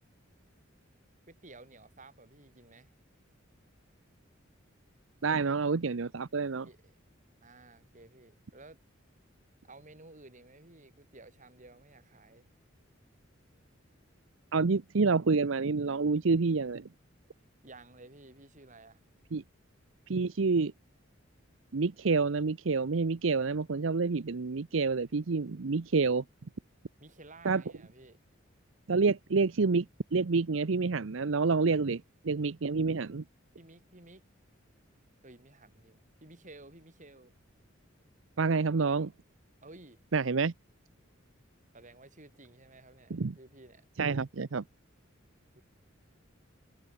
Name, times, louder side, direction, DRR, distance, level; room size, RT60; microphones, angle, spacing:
voice 1, 1.3-2.9 5.3-5.8 6.6-7.0 7.4-8.8 9.6-12.5 17.6-19.0 27.0-28.2 33.6-34.2 35.2-37.3 39.6-40.0 41.7-43.8 45.5-45.6, right 2 dB, 40° right, 4.8 m, -54 dB
voice 2, 5.2-6.7 14.5-16.9 19.3-19.4 20.1-20.7 21.7-26.2 27.4-27.6 28.9-29.9 30.1-33.2 38.4-39.1 40.1-40.5 43.1-43.3 44.0-44.6, right 4 dB, 70° right, 0.7 m, -28 dB
head